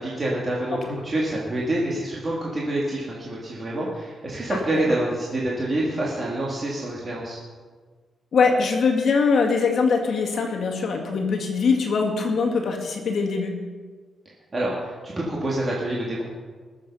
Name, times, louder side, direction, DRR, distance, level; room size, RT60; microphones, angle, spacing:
voice 1, 0.0-7.4 14.5-16.2, right 1 dB, 25° right, -4 dB, 2.0 m, -27 dB
voice 2, 8.3-13.5, left 4 dB, 55° left, 1 dB, 2.1 m, -22 dB
20.5 x 7.3 x 5.5 m, 1.5 s
wide cardioid pair, 155°, 0 cm